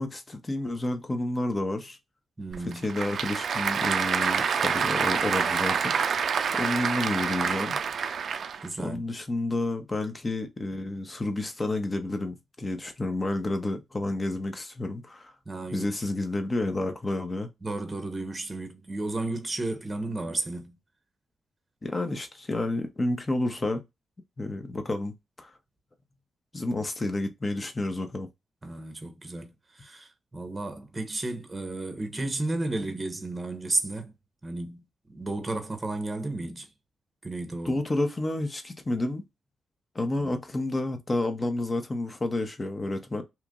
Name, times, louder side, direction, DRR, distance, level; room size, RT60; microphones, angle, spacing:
voice 1, 0.0-2.0 2.8-7.8 8.8-15.3 15.7-17.5 21.8-23.8 24.4-25.5 26.5-28.3 37.6-39.2 39.9-43.2, left 2 dB, 30° left, 0.8 m, -30 dB
voice 2, 2.4-2.8 8.6-9.0 15.5-15.9 17.6-20.8 26.8-26.9 28.6-34.1 34.4-36.7 37.2-37.8 40.2-40.4, right 2 dB, 25° right, 0.8 m, -33 dB
Applause / Crowd, 2.5-8.7, right 6 dB, 65° right, 0.3 m, -27 dB
3.0 x 2.4 x 3.6 m
cardioid pair, 85°, 0 cm